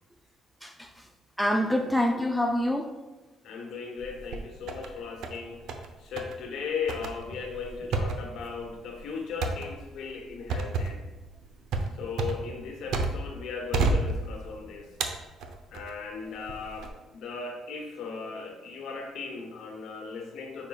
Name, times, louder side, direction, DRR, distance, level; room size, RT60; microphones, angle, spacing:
voice 1, 0.6-1.0 1.4-2.9, left 1 dB, ahead, 0.4 m, -26 dB
voice 2, 3.4-5.6 6.0-11.0 12.0-14.9 15.7-20.7, left 5 dB, 65° left, 1.1 m, -37 dB
sound 1, 4.0-4.9 5.2-5.9 6.2-6.4 6.9-13.4 13.7-14.6 15.0-15.9 16.5-16.9, right 3 dB, 75° right, 0.7 m, -31 dB
9.6 x 5.3 x 2.4 m
cardioid pair, 165°, 0 cm